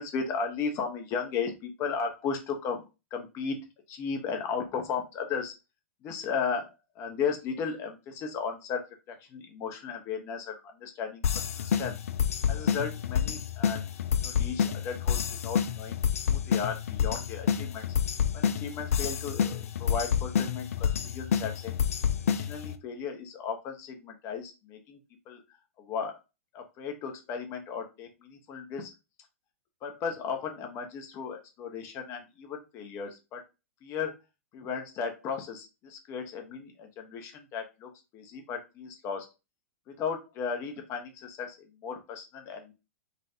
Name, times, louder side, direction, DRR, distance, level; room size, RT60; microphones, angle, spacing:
voice 1, 0.0-2.8 3.1-3.6 3.9-5.5 6.0-8.8 9.1-12.0 12.5-13.8 14.2-16.0 16.3-17.9 18.3-21.8 22.3-25.0 25.3-26.2 26.5-28.9 29.8-33.4 33.8-34.2 34.5-39.3 39.9-42.7, left 6 dB, 35° left, 4 dB, 0.9 m, -35 dB
sound 1, 11.2-22.7, left 8 dB, 70° left, 0.4 m, -29 dB
4.1 x 2.5 x 2.7 m, 0.27 s
figure-of-eight pair, 105°, 8 cm